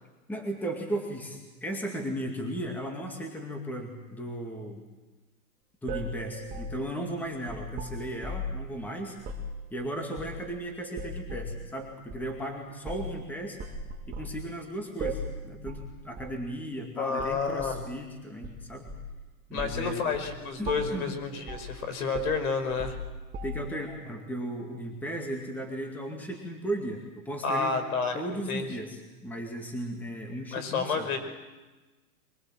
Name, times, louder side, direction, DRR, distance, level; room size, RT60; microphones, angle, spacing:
voice 1, 0.3-4.8 5.8-9.2 9.7-13.6 14.1-18.9 19.5-20.1 20.6-21.2 23.4-27.8 28.1-31.1, right 1 dB, 5° left, 2 dB, 2.3 m, -36 dB
sound 1, 5.9-8.6 9.2-9.5 10.2-10.6 11.0-11.6 12.1-12.3 12.9-13.2 13.6-14.4 15.0-15.4 15.7-15.9 16.2-16.4 17.2-17.8 18.4-19.2 19.6-19.8 20.1-20.3 20.6-21.0 21.5-21.7 22.1-23.8, equal, 20° right, 1.9 m, -37 dB
voice 2, 17.0-17.8 19.5-23.0 27.4-28.2 28.5-28.7 30.5-31.2, left 5 dB, 65° left, 9 dB, 5.2 m, -30 dB
24.0 x 22.5 x 7.6 m, 1.2 s
hypercardioid pair, 150°, 46 cm